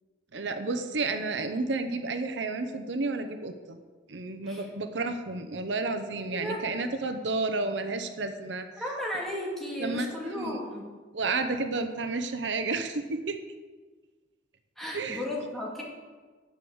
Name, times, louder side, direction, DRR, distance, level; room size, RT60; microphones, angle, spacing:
voice 1, 0.3-3.8 4.1-8.7 9.8-10.6 11.1-13.4 14.9-15.2, right 3 dB, 85° right, 8 dB, 0.8 m, -31 dB
voice 2, 6.3-6.6 8.8-10.8 14.8-15.8, left 1 dB, ahead, -3 dB, 2.2 m, -34 dB
10.0 x 6.4 x 7.1 m, 1.4 s
head